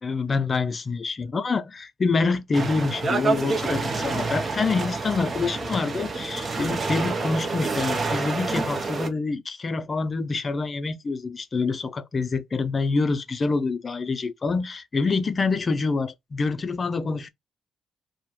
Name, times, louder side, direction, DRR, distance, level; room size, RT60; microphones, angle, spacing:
voice 1, 0.0-17.3, left 4 dB, 35° left, 0.4 m, -26 dB
sound 1, 2.5-9.1, right 3 dB, 35° right, 0.6 m, -28 dB
3.0 x 2.1 x 2.3 m
cardioid pair, 90°, 0 cm